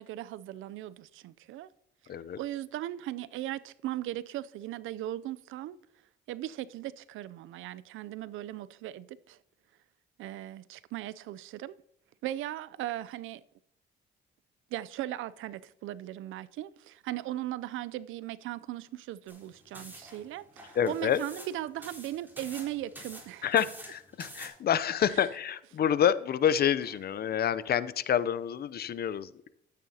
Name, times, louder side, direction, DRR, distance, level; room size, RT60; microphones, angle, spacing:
voice 1, 0.0-1.7 2.4-5.8 6.3-9.4 10.2-11.7 12.2-13.4 14.7-23.5 25.2-25.3, right 13 dB, 85° right, 0.5 m, -38 dB
voice 2, 2.1-2.4 20.7-21.2 23.4-29.5, left 9 dB, 50° left, 0.6 m, -28 dB
sound 1, 19.3-24.5, right 1 dB, 10° right, 3.6 m, -48 dB
12.5 x 9.1 x 2.8 m
cardioid pair, 90°, 20 cm